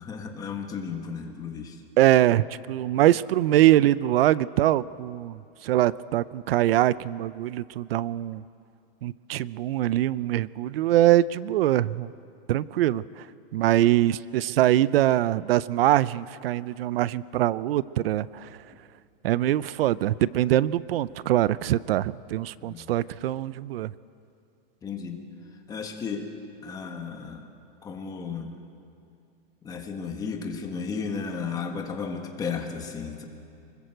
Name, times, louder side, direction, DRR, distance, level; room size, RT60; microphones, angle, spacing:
voice 1, 0.0-1.8 22.6-22.9 24.8-25.2 25.7-26.3 26.6-27.5 27.8-28.6 29.6-33.2, left 5 dB, 15° left, 4 dB, 1.5 m, -34 dB
voice 2, 2.0-8.4 9.0-12.1 12.5-13.3 13.5-18.6 19.2-23.9, right 13 dB, 85° right, 19 dB, 0.6 m, -23 dB
25.0 x 21.0 x 7.8 m, 2.5 s
supercardioid pair, 175°, 29 cm